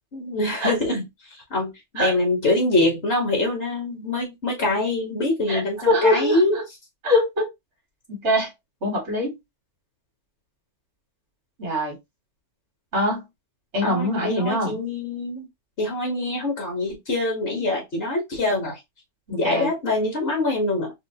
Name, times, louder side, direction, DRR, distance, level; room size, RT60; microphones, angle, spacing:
voice 1, 0.1-1.0 1.3-6.6 13.8-15.5 15.8-18.8 19.3-20.9, left 2 dB, 60° left, 1.4 m, -24 dB
voice 2, 5.5-6.6 7.0-7.5 8.1-8.5 8.8-9.4 11.6-12.0 12.9-13.2 13.7-14.8 19.3-19.7, left 1 dB, 80° right, 1.6 m, -23 dB
4.4 x 2.0 x 2.7 m
omnidirectional pair, 1.2 m